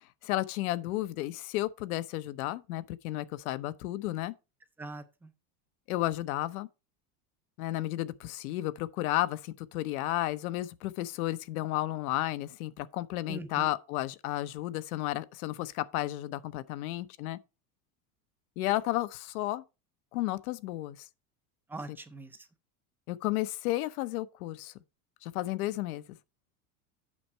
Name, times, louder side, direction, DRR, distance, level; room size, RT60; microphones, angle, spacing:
voice 1, 0.2-4.3 5.9-6.7 7.6-17.4 18.6-19.6 20.1-21.1 23.1-24.7 25.2-26.0, left 16 dB, 80° left, 0.9 m, -33 dB
voice 2, 4.8-5.3 13.3-13.7 21.7-22.5, right 2 dB, 5° right, 0.3 m, -42 dB
8.6 x 6.3 x 4.4 m
supercardioid pair, 160°, 43 cm